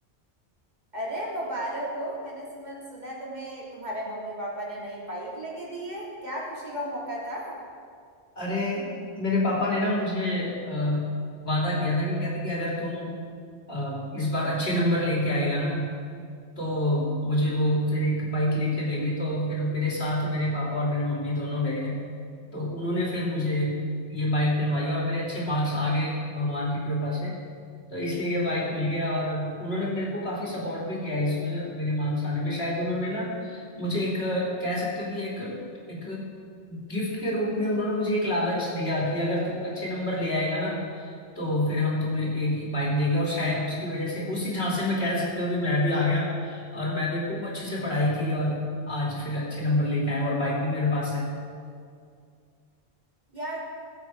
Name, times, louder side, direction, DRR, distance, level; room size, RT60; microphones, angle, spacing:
voice 1, 0.9-7.6 53.3-53.7, right 1 dB, 40° right, -5 dB, 3.3 m, -34 dB
voice 2, 8.4-8.9 9.1-11.2 11.4-13.1 13.7-15.9 16.6-22.0 22.5-23.8 24.1-27.3 27.9-35.6 35.9-36.3 36.7-51.3, left 1 dB, 65° left, -4 dB, 3.3 m, -27 dB
21.0 x 8.1 x 4.7 m, 2.3 s
omnidirectional pair, 1.1 m